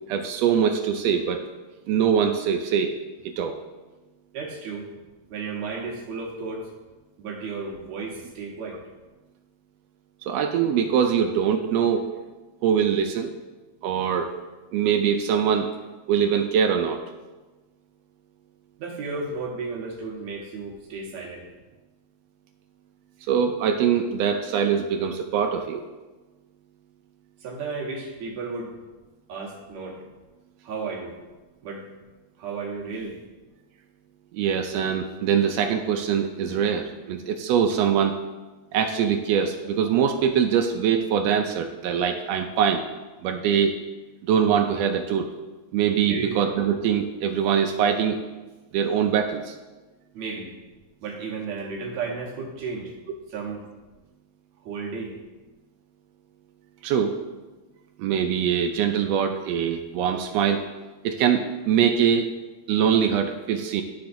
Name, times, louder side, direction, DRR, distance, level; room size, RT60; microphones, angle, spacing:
voice 1, 0.1-1.4 1.9-2.9 3.2-3.6 10.2-12.1 12.6-13.3 13.8-14.3 14.7-15.7 16.1-17.0 23.3-25.9 34.3-38.2 38.7-42.8 43.2-43.7 44.3-45.3 45.7-48.2 48.7-49.5 56.8-57.2 58.0-60.6 61.0-62.3 62.7-63.8, right 8 dB, 85° right, 5 dB, 1.4 m, -23 dB
voice 2, 4.3-4.9 5.3-6.7 7.2-8.8 18.8-21.5 27.4-28.7 29.3-30.0 30.6-31.2 31.6-31.8 32.4-33.2 46.1-46.4 50.1-50.5 51.0-52.9 53.3-53.6 54.6-55.1, right 4 dB, 70° right, -2 dB, 2.3 m, -33 dB
12.0 x 5.7 x 2.6 m, 1.2 s
omnidirectional pair, 3.4 m